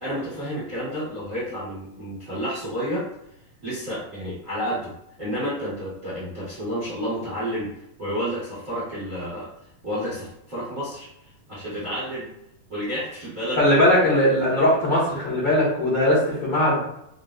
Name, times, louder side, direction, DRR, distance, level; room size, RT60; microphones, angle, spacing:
voice 1, 0.0-3.0 3.6-4.9 5.2-7.7 8.0-9.5 9.8-11.1 11.5-12.3 12.7-13.6, equal, 50° right, -10 dB, 0.9 m, -30 dB
voice 2, 13.6-16.8, left 1 dB, 50° left, -10 dB, 1.3 m, -19 dB
7.0 x 2.4 x 2.4 m, 0.77 s
omnidirectional pair, 4.2 m